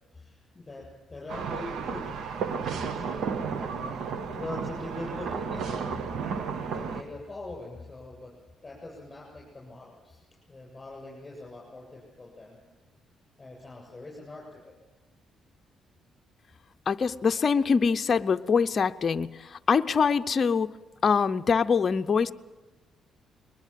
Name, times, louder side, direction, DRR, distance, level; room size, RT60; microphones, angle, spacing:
voice 1, 0.1-3.0 3.6-4.0 4.4-6.0 6.3-6.4 6.7-8.3 8.6-12.6 13.4-14.7, left 2 dB, 25° left, -2 dB, 7.9 m, -42 dB
sound 1, 1.3-7.0, right 6 dB, 70° right, 1.4 m, -33 dB
voice 2, 16.9-20.7 21.0-22.3, left 5 dB, 40° left, 8 dB, 0.7 m, -24 dB
21.5 x 20.0 x 7.6 m, 1.2 s
cardioid pair, 90°, 0 cm